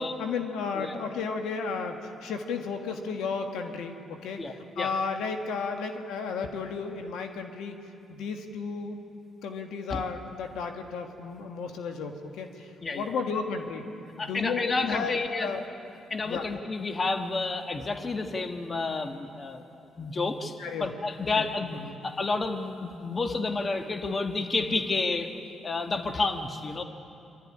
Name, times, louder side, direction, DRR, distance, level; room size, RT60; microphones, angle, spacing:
voice 1, 0.0-7.8 8.1-9.0 9.4-13.9 14.2-15.1 15.4-15.6 16.2-16.4 20.6-20.9 21.4-22.0, left 5 dB, 85° left, 5 dB, 1.7 m, -33 dB
voice 2, 0.7-1.1 4.4-4.9 9.9-10.0 12.8-13.1 14.2-15.5 16.1-19.6 20.0-21.7 22.0-25.4 25.6-26.8, left 3 dB, 35° left, 6 dB, 1.5 m, -30 dB
25.5 x 13.0 x 10.0 m, 2.7 s
cardioid pair, 90°, 0 cm